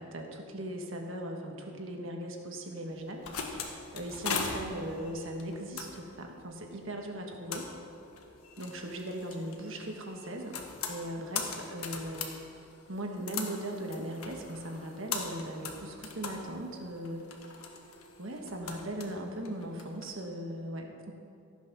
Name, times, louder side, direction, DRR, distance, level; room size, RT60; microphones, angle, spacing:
voice 1, 0.0-7.7 8.6-10.6 10.9-12.4 12.9-17.3 18.2-21.1, right 1 dB, 65° right, 2 dB, 1.5 m, -39 dB
sound 1, 2.9-20.1, left 5 dB, 85° left, 1.5 m, -41 dB
14.5 x 8.5 x 6.1 m, 2.5 s
head